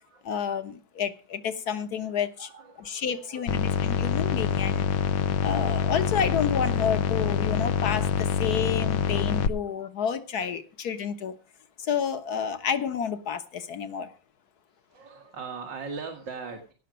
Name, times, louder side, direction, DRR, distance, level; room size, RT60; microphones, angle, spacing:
voice 1, 0.2-2.5 2.8-4.8 5.4-11.3 11.8-14.1, left 7 dB, 60° left, 1.7 m, -30 dB
voice 2, 2.4-3.7 7.6-7.7 8.7-8.8 9.3-9.4 12.1-12.2 14.9-16.7, right 5 dB, 80° right, 2.5 m, -41 dB
sound 1, 3.5-9.5, left 7 dB, 85° left, 1.5 m, -26 dB
17.5 x 6.5 x 6.3 m
omnidirectional pair, 1.9 m